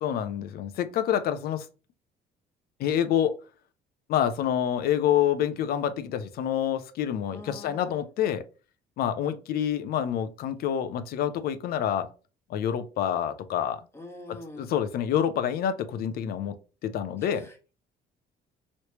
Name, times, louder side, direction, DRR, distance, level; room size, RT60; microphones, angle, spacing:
voice 1, 0.0-1.7 2.8-3.3 4.1-8.4 9.0-12.1 12.5-13.8 14.3-16.6 16.8-17.5, left 9 dB, 65° left, 0.5 m, -27 dB
voice 2, 7.3-8.0 13.9-14.7 17.2-17.7, left 2 dB, 15° left, 1.3 m, -45 dB
3.1 x 3.1 x 2.9 m
cardioid pair, 110°, 17 cm